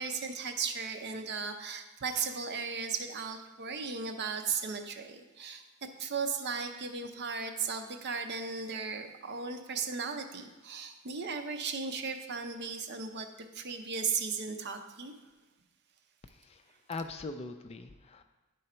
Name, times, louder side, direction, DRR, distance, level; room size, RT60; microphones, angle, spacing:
voice 1, 0.0-5.6 6.0-13.3 13.5-15.1, right 5 dB, 50° right, 6 dB, 0.6 m, -36 dB
voice 2, 16.3-16.6 16.9-18.2, left 3 dB, 30° left, 8 dB, 0.3 m, -41 dB
10.0 x 3.8 x 4.3 m, 1.2 s
head